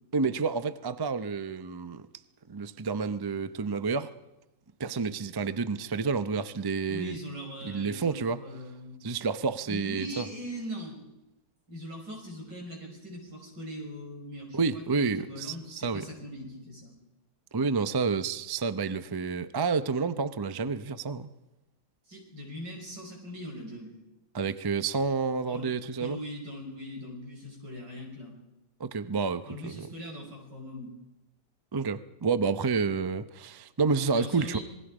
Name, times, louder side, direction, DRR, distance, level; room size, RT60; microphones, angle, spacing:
voice 1, 0.1-2.1 2.5-4.1 4.8-7.2 7.6-8.4 9.0-10.3 14.5-16.1 17.5-21.3 24.3-26.2 28.8-29.9 31.7-34.6, right 4 dB, 40° right, 13 dB, 0.3 m, -29 dB
voice 2, 6.9-9.1 9.7-11.0 11.7-16.9 22.1-24.0 25.5-28.4 29.4-30.9 34.1-34.6, equal, 85° right, 0 dB, 6.5 m, -41 dB
27.0 x 21.0 x 4.9 m, 0.95 s
omnidirectional pair, 1.8 m